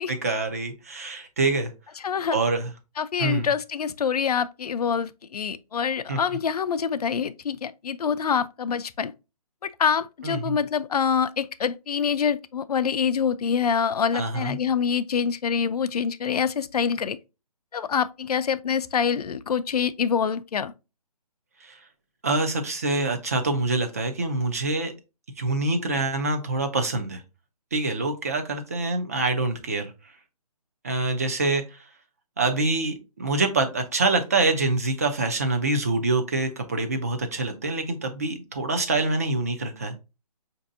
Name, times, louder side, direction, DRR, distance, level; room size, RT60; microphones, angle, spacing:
voice 1, 0.1-1.7 2.3-2.7 3.2-3.5 6.1-6.2 10.2-10.6 14.1-14.6 21.6-21.8 22.2-24.9 25.4-27.2 27.7-29.9 30.8-31.6 32.4-40.0, right 3 dB, 25° right, 0.4 m, -25 dB
voice 2, 2.0-2.4 3.0-9.1 9.6-17.2 17.7-20.7, left 7 dB, 70° left, 0.4 m, -25 dB
5.1 x 2.6 x 2.5 m
hypercardioid pair, 160°, 20 cm